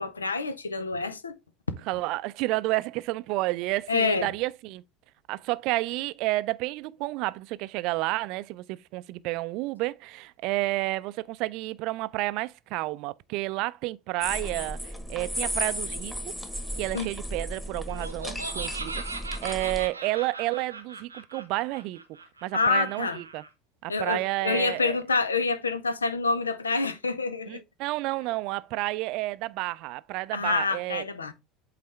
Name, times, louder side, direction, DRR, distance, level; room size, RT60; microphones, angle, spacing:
voice 1, 0.0-1.3 3.9-4.3 16.9-17.1 22.5-23.2 23.9-27.6 30.3-31.3, left 4 dB, 80° left, 0.7 m, -27 dB
voice 2, 1.9-4.8 5.3-16.1 16.8-19.0 19.4-22.0 22.4-23.4 23.8-25.0 27.5-31.0, right 19 dB, 55° right, 0.4 m, -30 dB
sound 1, 14.2-19.9, equal, 5° left, 1.4 m, -34 dB
Laughter, 17.9-23.5, right 3 dB, 85° right, 0.8 m, -39 dB
8.2 x 4.2 x 3.3 m
figure-of-eight pair, 70°, 0 cm